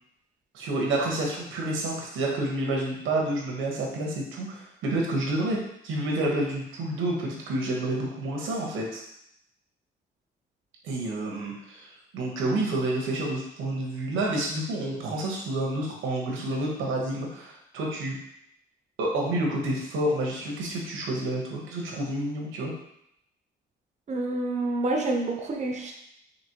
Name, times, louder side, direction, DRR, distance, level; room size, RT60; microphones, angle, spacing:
voice 1, 0.5-5.6 5.8-9.0 10.8-18.2 19.0-22.7, right 1 dB, 85° right, -1 dB, 1.1 m, -29 dB
voice 2, 24.1-25.9, right 2 dB, 35° right, 1 dB, 0.7 m, -28 dB
4.3 x 2.9 x 2.9 m, 0.76 s
cardioid pair, 90°, 20 cm